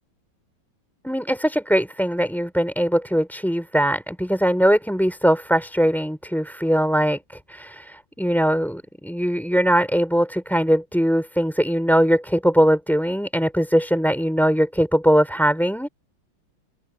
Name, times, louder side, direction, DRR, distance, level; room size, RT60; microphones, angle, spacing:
voice 1, 1.0-15.9, equal, ahead, 5.1 m, -21 dB
open air
omnidirectional pair, 2.1 m